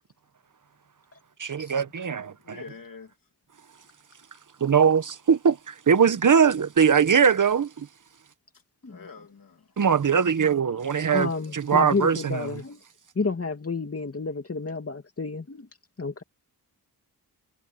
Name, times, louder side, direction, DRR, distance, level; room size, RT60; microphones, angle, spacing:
voice 1, 1.4-2.6 4.6-7.9 9.8-12.5, right 7 dB, 55° right, 0.9 m, -21 dB
voice 2, 2.1-3.1 8.9-9.7, left 5 dB, 60° left, 2.5 m, -46 dB
voice 3, 11.1-12.8 13.1-15.7 16.0-16.2, left 4 dB, 35° left, 2.6 m, -30 dB
wide cardioid pair, 135°, 38 cm